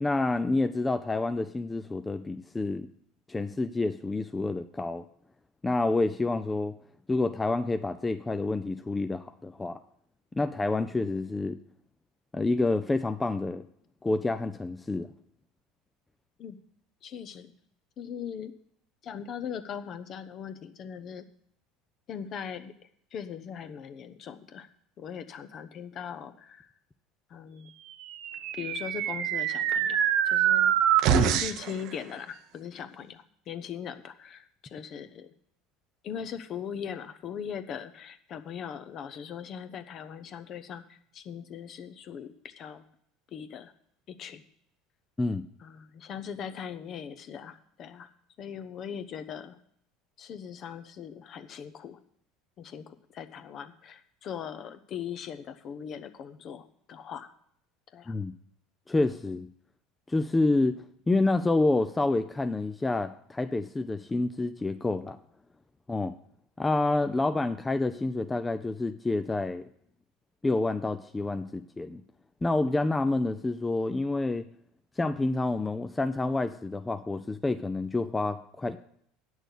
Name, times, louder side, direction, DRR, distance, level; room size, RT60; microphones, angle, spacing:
voice 1, 0.0-2.9 3.3-5.0 5.6-6.7 7.1-9.8 10.3-11.6 12.3-13.6 14.0-15.1 31.1-31.4 45.2-45.4 58.1-58.3 58.9-59.5 60.1-60.8 61.1-65.2 65.9-66.1 66.6-69.7 70.4-72.0 72.4-74.4 75.0-78.8, left 2 dB, 15° left, 9 dB, 0.5 m, -28 dB
voice 2, 17.0-17.5 18.0-18.5 19.0-21.2 22.1-22.7 23.1-24.7 25.0-26.7 27.3-27.7 28.5-30.7 31.2-35.3 36.0-42.8 43.3-43.7 44.1-44.4 45.6-48.1 48.4-49.6 50.2-52.0 52.6-57.3 57.9-58.1, left 8 dB, 45° left, 10 dB, 0.9 m, -40 dB
sound 1, 28.1-31.7, right 10 dB, 55° right, 0.7 m, -25 dB
9.0 x 6.4 x 8.1 m, 0.66 s
figure-of-eight pair, 70°, 0 cm